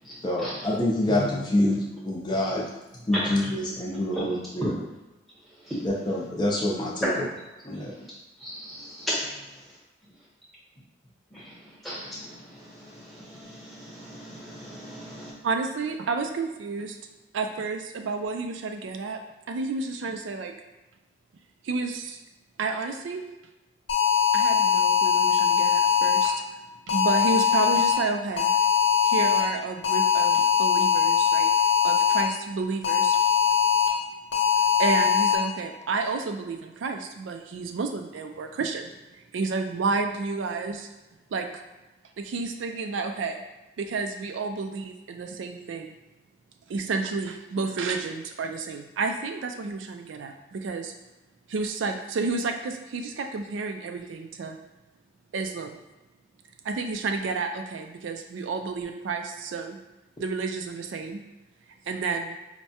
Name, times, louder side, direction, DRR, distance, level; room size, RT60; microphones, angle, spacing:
voice 1, 0.2-2.7 3.1-4.7 5.8-7.2 7.6-7.9, left 1 dB, 25° left, -3 dB, 0.4 m, -26 dB
voice 2, 8.4-9.3 11.3-15.3, equal, ahead, -7 dB, 0.8 m, -35 dB
voice 3, 15.4-17.0 17.3-19.2 19.5-20.5 21.6-22.2 22.6-23.2 24.3-26.6 26.9-28.5 29.0-31.5 31.8-33.2 34.8-40.9 41.3-41.6 42.2-43.4 43.8-45.9 46.7-50.9 51.5-54.6 55.3-55.8 56.6-59.8 60.2-61.2 61.9-62.4, right 4 dB, 85° right, 5 dB, 0.4 m, -30 dB
sound 1, 23.9-26.3 26.9-27.9 28.4-29.4 29.8-32.2 32.8-33.9 34.3-35.3, left 8 dB, 75° left, 0.8 m, -21 dB
4.6 x 2.1 x 2.7 m, 1.1 s
head